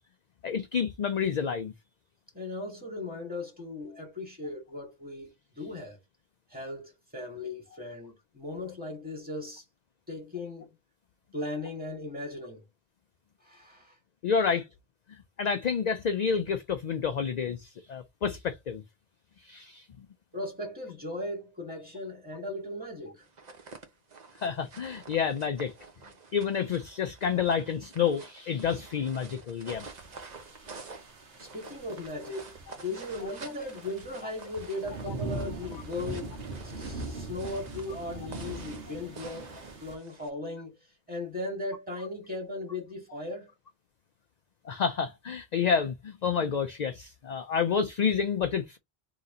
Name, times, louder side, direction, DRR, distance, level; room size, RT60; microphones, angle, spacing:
voice 1, 0.4-1.7 14.2-14.7 15.1-18.8 19.4-20.1 24.4-25.7 26.3-29.9 44.6-48.8, left 6 dB, 55° left, 0.5 m, -29 dB
voice 2, 2.3-6.0 6.5-9.6 10.1-10.8 11.3-12.6 13.4-14.0 20.3-23.3 31.4-36.4 36.6-40.7 41.1-43.5, left 2 dB, 10° right, 1.9 m, -37 dB
sound 1, 23.2-40.3, right 4 dB, 45° right, 0.9 m, -48 dB
sound 2, 29.7-40.0, right 2 dB, 75° right, 1.6 m, -41 dB
3.9 x 3.0 x 3.8 m
omnidirectional pair, 1.0 m